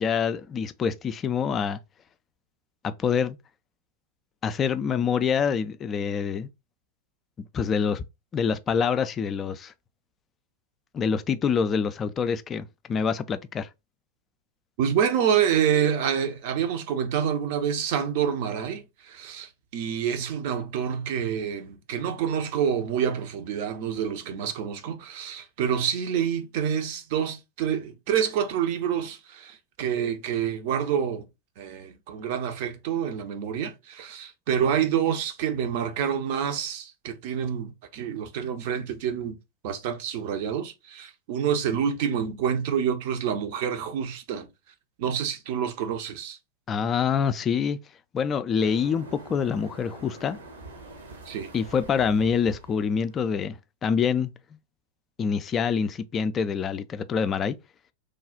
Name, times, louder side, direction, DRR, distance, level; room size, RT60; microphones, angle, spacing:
voice 1, 0.0-1.8 2.8-3.4 4.4-6.5 7.5-8.0 8.3-9.7 10.9-13.7 46.7-47.8 48.1-50.4 51.5-54.3 55.2-57.6, left 6 dB, 25° left, 0.3 m, -26 dB
voice 2, 14.8-31.2 31.6-39.4 39.6-44.5 45.0-46.4 51.3-51.5, right 8 dB, 50° right, 0.6 m, -27 dB
sound 1, 48.6-53.5, right 2 dB, 70° right, 1.0 m, -45 dB
3.3 x 2.3 x 3.8 m
figure-of-eight pair, 90°, 0 cm